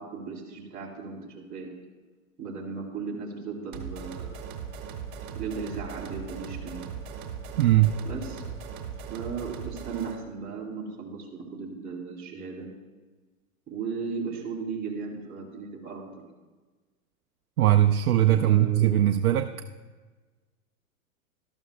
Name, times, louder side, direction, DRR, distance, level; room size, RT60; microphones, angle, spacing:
voice 1, 0.0-1.7 2.4-4.4 5.3-6.8 8.0-8.4 9.1-12.7 13.7-16.2 18.3-18.9, right 5 dB, 20° right, -3 dB, 2.8 m, -36 dB
sound 1, 3.7-10.2, right 7 dB, 55° right, 1.8 m, -39 dB
voice 2, 7.6-7.9 17.6-19.5, right 13 dB, 75° right, 6 dB, 0.6 m, -20 dB
13.0 x 12.5 x 2.2 m, 1.3 s
hypercardioid pair, 120°, 44 cm